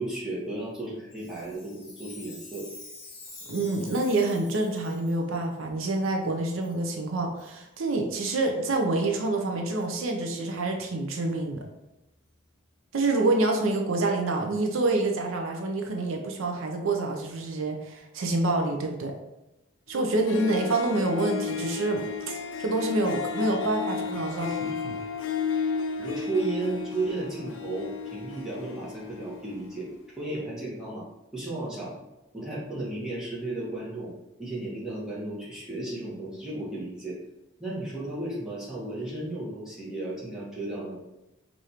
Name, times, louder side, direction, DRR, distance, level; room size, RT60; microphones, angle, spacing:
voice 1, 0.0-2.7 23.5-23.6 26.0-29.9 30.2-31.1 31.3-32.0 32.3-34.1 34.4-37.2 37.6-41.0, right 2 dB, 5° right, -8 dB, 1.2 m, -34 dB
Chime, 1.1-5.2 5.8-5.9 6.6-6.8 7.4-7.5 8.2-8.3 9.0-9.1 9.8-9.9, left 3 dB, 45° left, 1.3 m, -47 dB
voice 2, 3.5-11.6 12.9-19.1 19.9-25.0, right 2 dB, 80° right, 2 dB, 0.6 m, -27 dB
Harp, 20.0-20.1 20.2-29.8, left 5 dB, 75° left, 0.4 m, -33 dB
4.8 x 2.6 x 2.9 m, 0.96 s
head